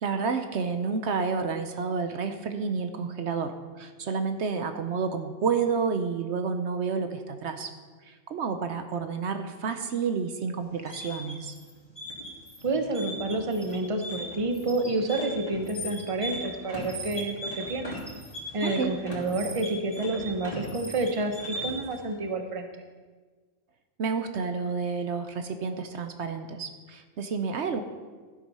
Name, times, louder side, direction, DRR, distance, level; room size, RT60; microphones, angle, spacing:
voice 1, 0.0-7.7 8.0-11.5 18.6-18.9 24.0-27.8, right 5 dB, 70° right, 7 dB, 1.0 m, -30 dB
sound 1, 10.6-21.9, equal, 30° left, 3.0 m, -38 dB
voice 2, 12.6-18.0 18.5-22.7, right 2 dB, 30° right, 6 dB, 0.9 m, -29 dB
12.5 x 7.7 x 5.5 m, 1.4 s
omnidirectional pair, 1.2 m